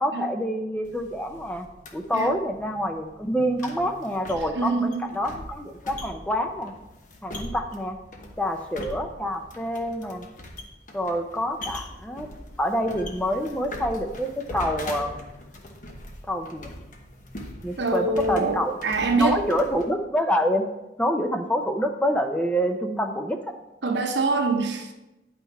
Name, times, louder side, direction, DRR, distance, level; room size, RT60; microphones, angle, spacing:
voice 1, 0.0-1.7 1.9-6.7 7.2-8.0 8.4-10.3 10.9-12.3 12.6-15.2 16.3-16.7 17.6-18.7 19.2-20.6 21.0-23.4, equal, 10° left, 5 dB, 0.5 m, -27 dB
sound 1, 0.8-19.9, left 1 dB, 45° left, 1.1 m, -41 dB
voice 2, 4.5-5.0 17.8-19.4 23.8-24.9, right 3 dB, 80° right, 4 dB, 1.0 m, -24 dB
9.6 x 5.8 x 4.1 m, 0.98 s
head